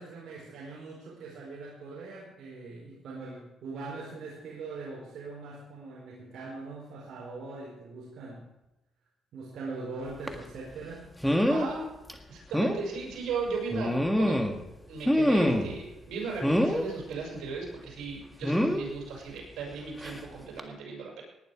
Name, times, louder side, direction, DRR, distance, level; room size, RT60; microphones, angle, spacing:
voice 1, 0.0-8.5 9.3-11.1, right 3 dB, 65° right, -4 dB, 4.7 m, -42 dB
sound 1, 10.3-10.4 11.2-11.7 12.1-12.2 12.5-12.8 13.7-14.6 15.0-15.8 16.4-16.9 18.4-18.8 20.0-20.2 20.6-20.7, equal, ahead, 1.8 m, -25 dB
voice 2, 11.5-11.9 12.3-14.4 14.9-21.2, right 4 dB, 80° right, -1 dB, 6.7 m, -36 dB
19.0 x 11.0 x 5.0 m, 0.98 s
cardioid pair, 90°, 0 cm